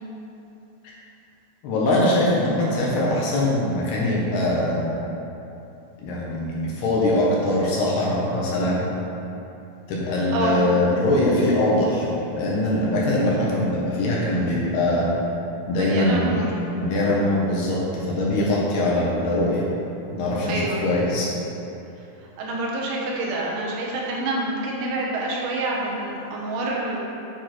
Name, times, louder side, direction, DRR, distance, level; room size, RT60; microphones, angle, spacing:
voice 1, 1.6-5.0 6.0-8.8 9.9-15.1 15.7-16.3 16.7-19.6 20.1-21.3, left 1 dB, 65° left, -5 dB, 3.1 m, -22 dB
voice 2, 10.3-10.7 15.8-16.5 20.5-20.8 22.4-27.0, right 2 dB, 80° right, -3 dB, 3.6 m, -27 dB
9.4 x 7.4 x 4.4 m, 2.9 s
omnidirectional pair, 5.3 m